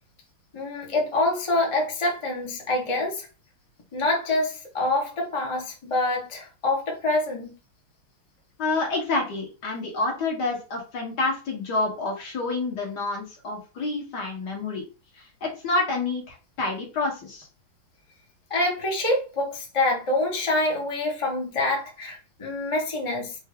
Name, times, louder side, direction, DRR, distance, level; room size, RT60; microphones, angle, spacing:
voice 1, 0.5-3.3 3.9-7.6 18.5-23.4, left 2 dB, 25° left, -1 dB, 0.7 m, -26 dB
voice 2, 8.6-14.8 15.1-17.5, left 3 dB, 55° left, 0 dB, 1.7 m, -28 dB
4.7 x 2.6 x 3.4 m, 0.33 s
omnidirectional pair, 2.3 m